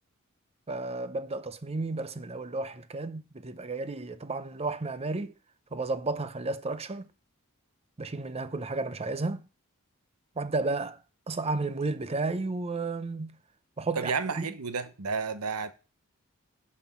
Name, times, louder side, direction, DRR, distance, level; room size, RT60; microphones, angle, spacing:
voice 1, 0.7-5.3 5.7-7.1 8.0-9.4 10.4-11.0 11.3-13.4 13.8-14.1 14.4-14.5, right 3 dB, 30° right, 0.7 m, -32 dB
voice 2, 13.9-15.7, right 5 dB, 80° right, 0.9 m, -31 dB
11.0 x 4.4 x 7.1 m
head